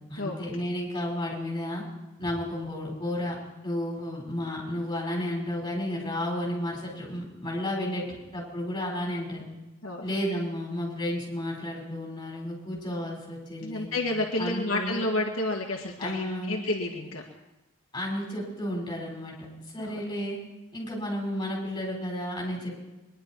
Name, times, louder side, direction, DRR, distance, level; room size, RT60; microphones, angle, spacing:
voice 1, 0.1-1.8 2.2-3.4 3.6-9.5 10.0-13.9 14.4-15.0 16.0-16.6 17.9-19.4 19.7-20.4 20.7-22.8, left 1 dB, 20° left, -3 dB, 5.4 m, -32 dB
voice 2, 13.6-17.2 19.8-20.0, left 2 dB, 70° left, -2 dB, 1.8 m, -30 dB
22.5 x 11.0 x 4.7 m, 1.0 s
head